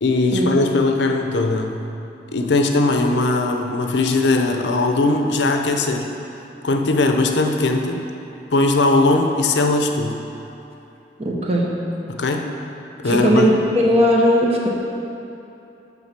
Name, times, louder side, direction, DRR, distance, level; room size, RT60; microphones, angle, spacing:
voice 1, 0.0-1.8 2.3-6.1 6.6-8.0 8.5-10.2 12.1-12.5 13.0-13.5, left 2 dB, 80° left, 4 dB, 0.6 m, -19 dB
voice 2, 11.2-11.8 13.0-14.7, equal, 35° right, -2 dB, 0.9 m, -18 dB
8.5 x 4.0 x 5.9 m, 2.9 s
head